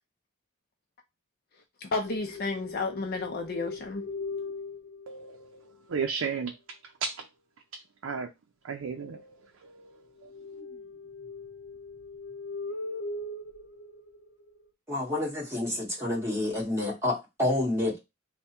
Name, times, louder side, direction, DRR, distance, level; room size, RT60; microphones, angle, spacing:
voice 1, 1.8-4.0, left 3 dB, 50° left, 0.5 m, -32 dB
sound 1, 2.0-5.8 10.2-14.6, left 3 dB, 90° left, 0.9 m, -40 dB
voice 2, 5.1-6.5 7.0-7.3 7.7-8.3 8.6-10.3, right 5 dB, 90° right, 0.5 m, -35 dB
voice 3, 14.9-18.0, left 1 dB, 15° right, 1.5 m, -29 dB
3.4 x 2.1 x 4.2 m
head